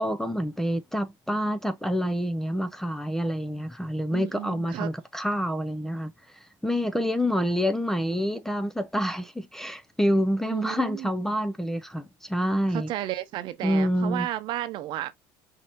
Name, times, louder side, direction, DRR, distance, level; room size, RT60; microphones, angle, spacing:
voice 1, 0.0-12.9 13.6-14.3, equal, 5° left, 0.5 m, -27 dB
voice 2, 4.1-4.9 10.5-11.1 12.7-15.2, right 14 dB, 55° right, 0.8 m, -33 dB
5.6 x 2.7 x 2.9 m
cardioid pair, 130°, 9 cm